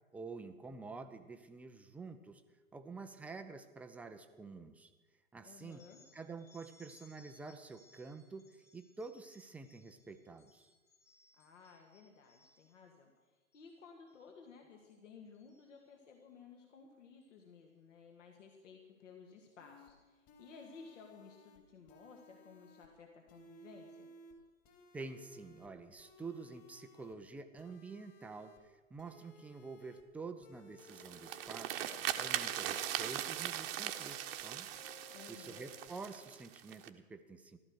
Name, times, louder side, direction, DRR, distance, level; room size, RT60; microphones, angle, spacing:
voice 1, 0.1-2.4 2.7-4.9 5.3-5.8 6.1-10.7 24.9-31.9 32.2-34.7 35.3-37.6, right 4 dB, 5° right, 8 dB, 0.5 m, -48 dB
voice 2, 5.4-6.0 11.3-13.1 13.5-24.1 35.1-35.6, left 5 dB, 65° left, 2 dB, 2.1 m, -56 dB
sound 1, 5.6-12.9 13.4-13.8 14.1-14.5 14.9-16.2 17.2-17.4 18.4-18.6 19.5-19.6 20.0-20.1 20.6-20.9, left 2 dB, 80° left, 4.0 m, -68 dB
sound 2, 19.6-19.9 20.3-21.6 21.9-22.9 23.3-24.3 24.6-25.7 26.0-27.1 27.6-28.6 29.0-30.0 30.4-31.5 31.8-33.0 33.3-34.4 34.7-35.9, left 3 dB, 35° left, 2.9 m, -60 dB
sound 3, 30.8-36.9, right 12 dB, 45° right, 1.1 m, -40 dB
15.0 x 12.5 x 6.4 m, 1.2 s
figure-of-eight pair, 100°, 41 cm